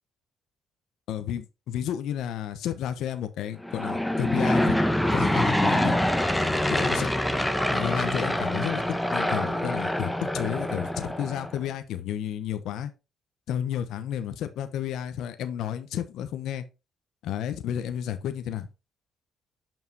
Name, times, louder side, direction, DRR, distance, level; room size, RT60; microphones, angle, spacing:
voice 1, 1.1-4.7 5.1-6.0 6.7-7.1 7.7-12.9 13.5-16.6 17.2-18.7, left 10 dB, 85° left, 0.9 m, -31 dB
Aircraft / Engine, 3.6-11.6, left 1 dB, 5° left, 1.1 m, -25 dB
7.4 x 5.7 x 4.6 m
cardioid pair, 90°, 0 cm